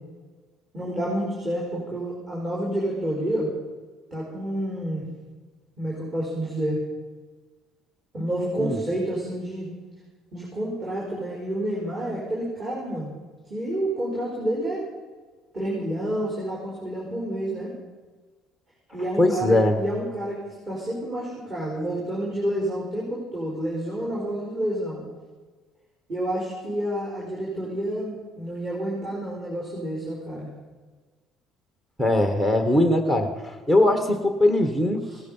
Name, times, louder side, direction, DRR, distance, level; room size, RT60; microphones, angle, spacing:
voice 1, 0.7-3.5 4.1-5.0 5.8-6.8 8.1-9.7 10.3-13.1 13.5-14.8 15.5-17.7 18.9-20.4 20.7-25.0 26.1-30.5 35.1-35.2, right 1 dB, 30° right, -4 dB, 4.7 m, -29 dB
voice 2, 19.2-19.8 32.0-35.0, left 1 dB, 10° right, 6 dB, 1.3 m, -21 dB
17.0 x 13.0 x 5.5 m, 1.4 s
cardioid pair, 150°, 0 cm